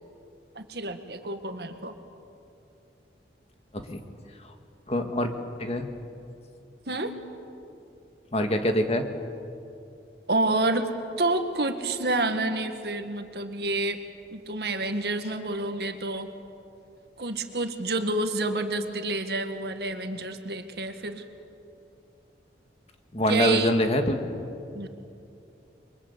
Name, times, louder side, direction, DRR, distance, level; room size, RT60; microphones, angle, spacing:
voice 1, 0.6-1.9 6.9-7.1 10.3-10.9 11.2-14.0 14.3-16.3 17.2-21.2 23.2-23.7 24.7-24.9, right 2 dB, 65° right, 7 dB, 2.0 m, -28 dB
voice 2, 4.9-5.3 5.6-5.9 8.3-9.1 23.1-24.2, left 1 dB, 35° left, 5 dB, 2.0 m, -24 dB
29.0 x 23.5 x 8.4 m, 2.7 s
head